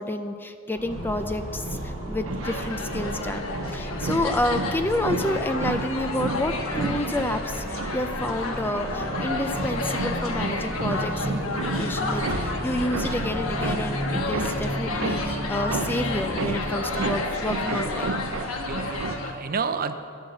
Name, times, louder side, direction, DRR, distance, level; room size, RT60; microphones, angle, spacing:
voice 1, 0.0-18.2, left 1 dB, 10° left, 8 dB, 0.5 m, -29 dB
sound 1, 0.7-16.9, equal, 45° left, 1.9 m, -35 dB
sound 2, 0.9-19.2, right 3 dB, 85° right, 0.6 m, -33 dB
sound 3, 2.4-19.3, left 3 dB, 80° left, 1.3 m, -31 dB
voice 2, 18.5-20.0, right 5 dB, 45° right, 9 dB, 0.7 m, -31 dB
11.0 x 10.5 x 6.9 m, 2.3 s
head